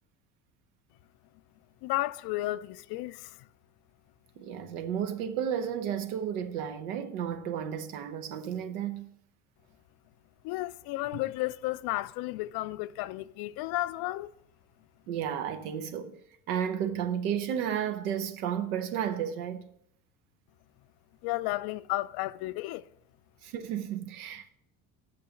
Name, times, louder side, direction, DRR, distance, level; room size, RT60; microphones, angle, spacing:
voice 1, 1.8-3.5 10.4-14.3 21.2-22.8, left 17 dB, 60° left, 0.5 m, -33 dB
voice 2, 4.4-9.1 15.1-16.1 16.5-19.6 23.4-24.5, right 9 dB, 80° right, 0.9 m, -32 dB
7.7 x 5.3 x 5.8 m
hypercardioid pair, 70°, 44 cm